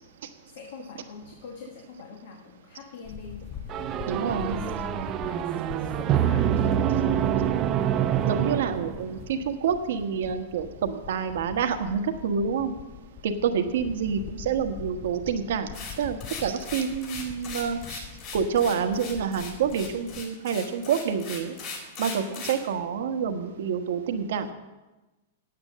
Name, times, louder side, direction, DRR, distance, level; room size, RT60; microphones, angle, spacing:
voice 1, 0.4-3.8 4.3-7.6, left 5 dB, 65° left, 2 dB, 1.5 m, -44 dB
sound 1, 3.0-20.2, left 9 dB, 30° left, 0.7 m, -43 dB
sound 2, 3.7-9.3, right 10 dB, 35° right, 0.6 m, -26 dB
voice 2, 4.1-4.6 8.2-12.7 13.2-15.7 16.0-18.0 18.3-21.5 22.0-24.5, right 7 dB, 70° right, 7 dB, 1.2 m, -28 dB
sound 3, 15.7-22.6, left 5 dB, 45° left, 4.0 m, -38 dB
8.8 x 8.8 x 7.4 m, 1.1 s
hypercardioid pair, 125°, 0 cm